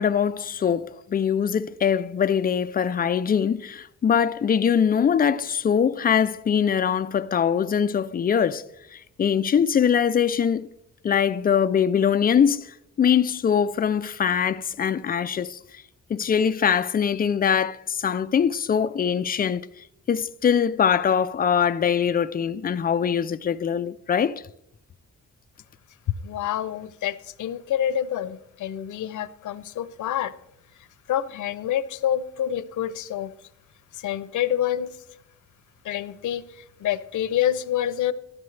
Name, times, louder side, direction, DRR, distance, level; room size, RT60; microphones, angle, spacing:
voice 1, 0.0-8.6 8.9-10.7 11.0-12.7 13.0-15.6 16.1-19.6 20.1-24.4, left 7 dB, 30° left, 0.4 m, -22 dB
voice 2, 26.2-30.3 31.1-33.3 33.9-35.0 35.8-38.1, left 11 dB, 90° left, 0.7 m, -27 dB
13.5 x 12.0 x 3.3 m
wide cardioid pair, 140°, 30 cm